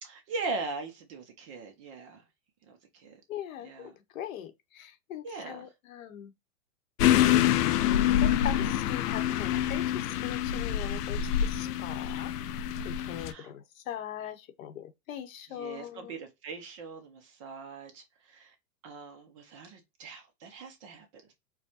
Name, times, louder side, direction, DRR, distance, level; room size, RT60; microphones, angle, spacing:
voice 1, 0.0-2.2 2.6-3.2 3.6-3.9 5.2-5.7 11.6-11.8 13.2-13.5 15.5-18.5 18.8-21.4, right 3 dB, 25° right, 0.4 m, -41 dB
voice 2, 3.3-6.3 8.2-16.1, left 10 dB, 60° left, 0.8 m, -41 dB
sound 1, 7.0-13.3, left 11 dB, 90° left, 0.6 m, -26 dB
4.6 x 2.1 x 2.7 m
supercardioid pair, 150°, 46 cm